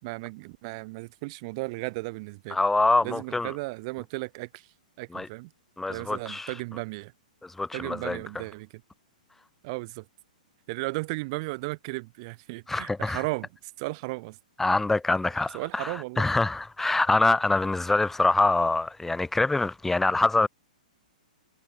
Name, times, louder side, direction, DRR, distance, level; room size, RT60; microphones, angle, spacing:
voice 1, 0.0-2.6 3.0-4.7 5.0-5.5 5.9-7.1 7.7-8.8 9.6-10.0 10.7-14.4 15.5-16.3, right 26 dB, 45° right, 5.5 m, -35 dB
voice 2, 2.5-3.5 5.1-5.3 5.8-6.5 7.4-8.2 12.7-13.2 14.6-20.5, left 2 dB, 5° left, 2.7 m, -25 dB
hypercardioid pair, 120°, 4 cm